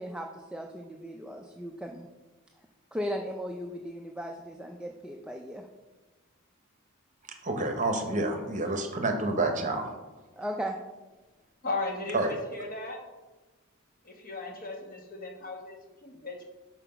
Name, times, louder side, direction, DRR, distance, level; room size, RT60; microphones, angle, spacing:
voice 1, 0.0-2.1 2.9-5.7 10.3-10.8, equal, 5° right, 1 dB, 0.4 m, -37 dB
voice 2, 7.4-9.9 12.1-12.3, right 2 dB, 40° right, 4 dB, 0.9 m, -28 dB
voice 3, 11.6-13.0 14.0-16.4, left 2 dB, 45° left, 1 dB, 1.2 m, -36 dB
5.9 x 4.5 x 5.7 m, 1.2 s
head